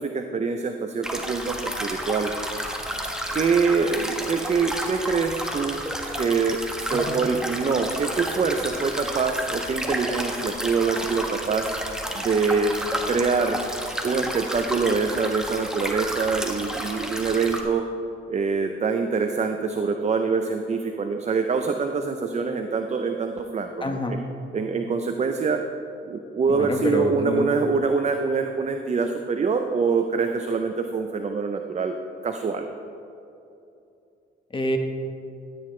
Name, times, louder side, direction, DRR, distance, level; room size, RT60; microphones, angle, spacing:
voice 1, 0.0-2.3 3.3-5.8 6.2-11.8 12.1-12.8 13.1-13.6 14.0-17.8 18.3-24.2 24.5-25.6 26.0-31.9 32.2-32.7, right 5 dB, 35° right, 5 dB, 0.6 m, -25 dB
sound 1, 1.0-17.6, equal, 5° right, 1.3 m, -31 dB
voice 2, 23.8-24.2 26.5-27.5 34.5-34.8, left 1 dB, 25° left, 4 dB, 1.3 m, -27 dB
14.0 x 9.5 x 3.3 m, 2.7 s
cardioid pair, 90°, 20 cm